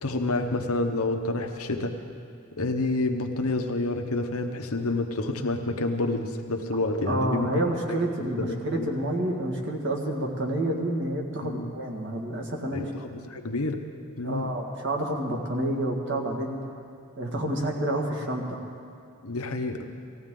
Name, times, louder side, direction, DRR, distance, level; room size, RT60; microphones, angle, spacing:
voice 1, 0.0-2.0 2.5-7.5 8.2-8.9 11.4-11.7 12.7-13.8 14.2-14.5 19.2-19.9, left 2 dB, 85° left, 5 dB, 1.0 m, -28 dB
voice 2, 7.1-12.9 14.2-16.6 17.2-18.6, right 1 dB, 55° right, 0 dB, 1.8 m, -29 dB
19.0 x 15.0 x 3.8 m, 2.3 s
head